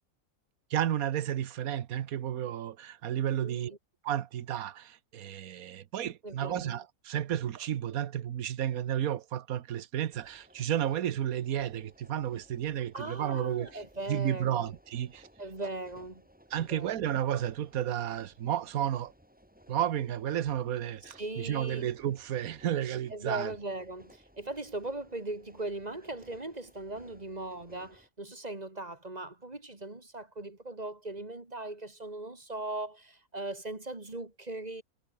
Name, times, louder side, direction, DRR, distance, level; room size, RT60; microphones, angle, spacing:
voice 1, 0.7-3.7 4.0-13.8 14.1-15.3 16.5-19.1 19.7-23.5, right 10 dB, 80° right, 1.4 m, -32 dB
voice 2, 3.4-3.8 6.2-6.8 12.9-14.7 15.4-16.2 16.6-17.0 21.0-21.9 23.1-34.8, right 2 dB, 30° right, 2.5 m, -39 dB
sound 1, 10.1-28.1, equal, 5° right, 5.4 m, -59 dB
omnidirectional pair, 1.5 m